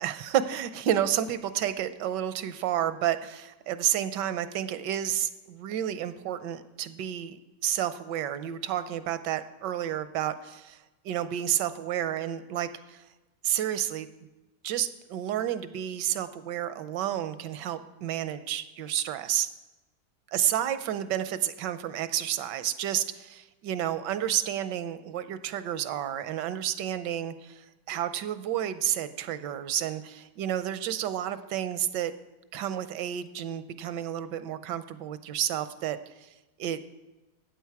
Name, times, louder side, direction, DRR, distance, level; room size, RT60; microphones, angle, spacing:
voice 1, 0.0-13.0 13.4-14.1 14.6-19.5 20.3-32.1 32.5-36.3 36.6-36.8, right 11 dB, 80° right, 13 dB, 1.3 m, -30 dB
13.0 x 8.9 x 4.6 m, 1.1 s
omnidirectional pair, 1.9 m